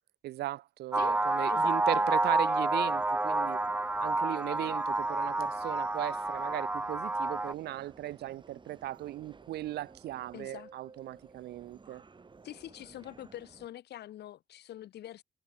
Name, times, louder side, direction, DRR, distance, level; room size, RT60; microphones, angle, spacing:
voice 1, 0.2-3.6 4.0-12.0, right 15 dB, 75° right, 0.5 m, -37 dB
sound 1, 0.9-7.5, right 2 dB, 10° right, 0.5 m, -29 dB
Subway metro underground, 0.9-13.7, right 4 dB, 30° right, 2.8 m, -55 dB
voice 2, 1.5-2.1 10.3-10.7 12.4-15.2, left 12 dB, 75° left, 4.0 m, -44 dB
cardioid pair, 100°, 17 cm